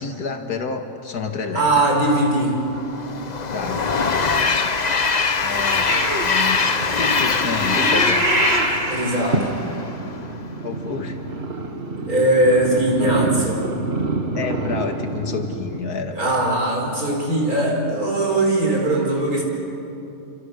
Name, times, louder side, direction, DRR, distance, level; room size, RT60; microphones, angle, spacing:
voice 1, 0.0-1.9 3.5-3.9 5.4-8.7 10.6-11.3 13.0-13.3 14.3-16.3, left 4 dB, 70° left, 5 dB, 2.4 m, -29 dB
voice 2, 1.5-2.7 8.9-9.6 12.0-13.6 16.1-19.4, right 1 dB, 65° right, 0 dB, 5.4 m, -20 dB
Train, 2.7-10.1, left 4 dB, 35° left, 0.9 m, -22 dB
Purr / Meow, 5.9-15.8, right 3 dB, 40° right, 2.0 m, -26 dB
29.5 x 26.0 x 7.1 m, 2.8 s
omnidirectional pair, 1.7 m